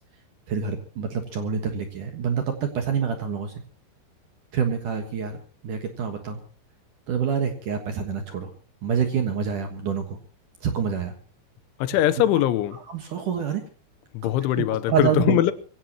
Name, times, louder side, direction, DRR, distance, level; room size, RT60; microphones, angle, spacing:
voice 1, 0.5-3.5 4.5-5.4 5.6-6.4 7.1-8.5 8.8-10.2 10.6-11.1 11.9-12.0 12.7-13.6 14.5-15.4, right 7 dB, 60° right, 2.3 m, -27 dB
voice 2, 11.8-12.8 14.1-15.5, left 13 dB, 85° left, 3.3 m, -21 dB
23.5 x 16.5 x 2.9 m
omnidirectional pair, 5.4 m